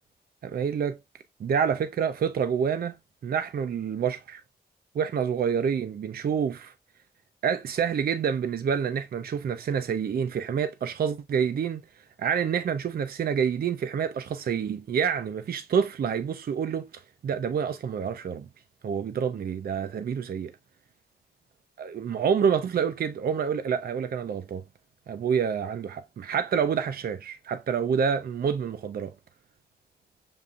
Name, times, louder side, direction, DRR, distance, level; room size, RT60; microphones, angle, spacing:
voice 1, 0.4-1.0 1.4-3.0 3.2-4.4 4.9-6.7 7.4-11.8 12.2-18.5 18.8-20.5 21.8-24.6 25.1-29.1, right 7 dB, 65° right, 0.4 m, -27 dB
7.0 x 2.5 x 2.4 m
wide cardioid pair, 140°, 17 cm